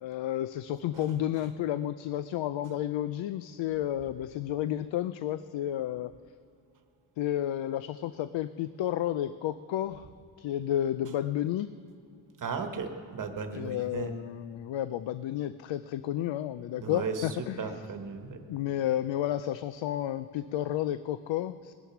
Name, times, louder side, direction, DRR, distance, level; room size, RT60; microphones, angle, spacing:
voice 1, 0.0-6.1 7.2-10.1 10.4-11.7 13.5-17.7 18.5-21.7, left 12 dB, 75° left, 13 dB, 0.5 m, -31 dB
voice 2, 12.4-14.1 16.8-18.4, right 5 dB, 45° right, 5 dB, 1.3 m, -36 dB
21.0 x 10.5 x 5.9 m, 2.3 s
wide cardioid pair, 170°, 45 cm